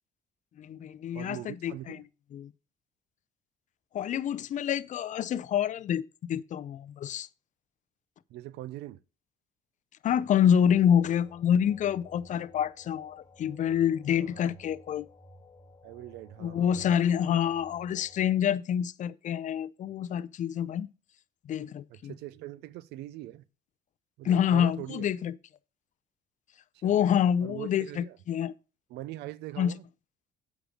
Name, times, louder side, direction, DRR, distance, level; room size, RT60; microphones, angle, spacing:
voice 1, 0.6-2.0 2.3-2.5 3.9-7.3 10.0-15.0 16.4-20.9 21.4-22.1 24.2-25.3 26.8-28.5 29.6-29.7, left 9 dB, 45° left, 0.6 m, -27 dB
voice 2, 1.1-2.0 8.3-9.0 14.1-14.5 15.8-16.9 21.9-23.4 24.2-25.1 26.8-26.9 27.4-28.2 28.9-29.8, right 15 dB, 90° right, 0.6 m, -42 dB
sound 1, 10.4-18.4, left 2 dB, 25° left, 2.1 m, -55 dB
8.0 x 6.5 x 5.0 m
cardioid pair, 110°, 17 cm